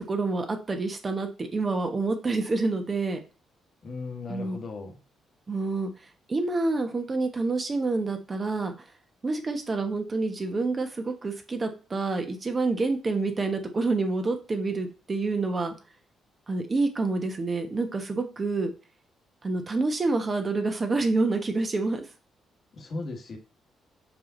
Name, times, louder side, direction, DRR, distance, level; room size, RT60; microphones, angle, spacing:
voice 1, 0.0-3.2 4.3-4.6 5.5-5.9 6.3-8.7 9.2-15.7 16.5-18.7 19.4-22.0, right 3 dB, 30° right, 5 dB, 1.2 m, -27 dB
voice 2, 3.8-5.0 22.7-23.4, left 3 dB, 50° left, 4 dB, 1.6 m, -36 dB
5.6 x 4.8 x 3.9 m, 0.32 s
cardioid pair, 90°, 0 cm